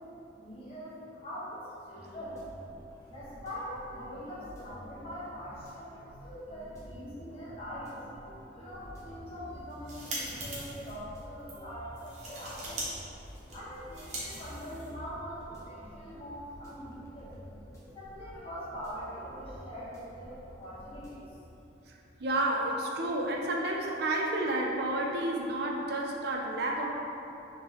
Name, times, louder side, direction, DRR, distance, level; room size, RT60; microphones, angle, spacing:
voice 1, 0.0-2.4 3.1-8.0 8.5-12.9 13.5-17.4 17.9-21.4, equal, 30° left, -9 dB, 1.1 m, -43 dB
sound 1, 1.9-21.3, equal, 15° left, 0.6 m, -50 dB
sound 2, 9.6-10.9 11.4-11.6 12.0-12.9 13.1-15.1, right 1 dB, 40° right, 0.8 m, -41 dB
voice 2, 22.2-26.9, right 1 dB, 60° right, 0 dB, 0.4 m, -30 dB
3.5 x 3.5 x 2.9 m, 3.0 s
head